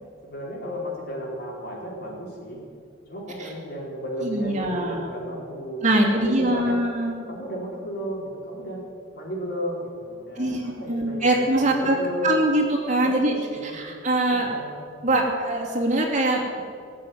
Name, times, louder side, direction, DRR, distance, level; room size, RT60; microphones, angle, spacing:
voice 1, 0.2-2.6 3.1-6.8 7.3-8.8 9.1-12.5 13.0-13.8 14.3-14.8, left 1 dB, 55° left, -3 dB, 4.7 m, -33 dB
voice 2, 4.2-5.1 5.8-7.2 10.4-12.0 12.2-13.3 13.6-14.6 15.0-16.6, right 1 dB, 40° right, -1 dB, 2.6 m, -23 dB
18.5 x 7.5 x 9.6 m, 2.3 s
head